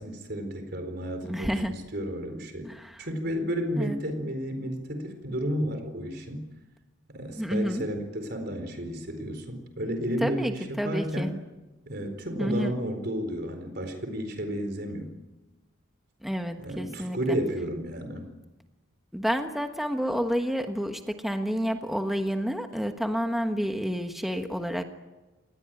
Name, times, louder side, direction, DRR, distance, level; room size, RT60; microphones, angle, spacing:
voice 1, 0.0-2.7 3.0-6.5 7.1-11.4 11.9-15.1 16.6-18.3, equal, 50° right, 7 dB, 4.3 m, -32 dB
voice 2, 1.3-1.8 2.7-2.9 3.8-4.0 7.4-7.8 10.2-11.3 12.4-12.7 16.2-17.2 19.1-24.8, equal, ahead, 5 dB, 1.3 m, -29 dB
27.5 x 19.5 x 9.1 m, 1.1 s
head